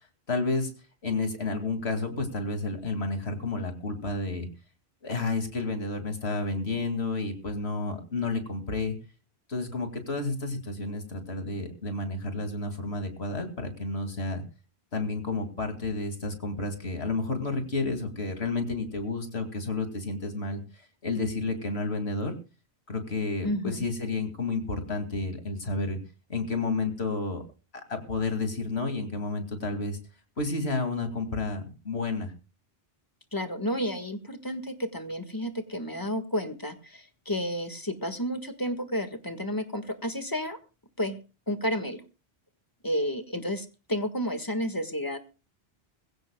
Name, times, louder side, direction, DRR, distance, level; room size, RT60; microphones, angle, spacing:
voice 1, 0.3-0.7 1.0-4.5 5.0-9.0 9.5-14.4 14.9-22.3 22.9-26.0 26.3-27.4 27.9-30.0 30.4-32.3, left 3 dB, 75° left, 6 dB, 2.7 m, -31 dB
voice 2, 23.4-23.9 33.3-40.6 41.0-41.2 41.5-42.0 42.8-45.2, equal, 20° left, 8 dB, 1.6 m, -31 dB
21.5 x 16.0 x 2.3 m, 0.32 s
omnidirectional pair, 1.1 m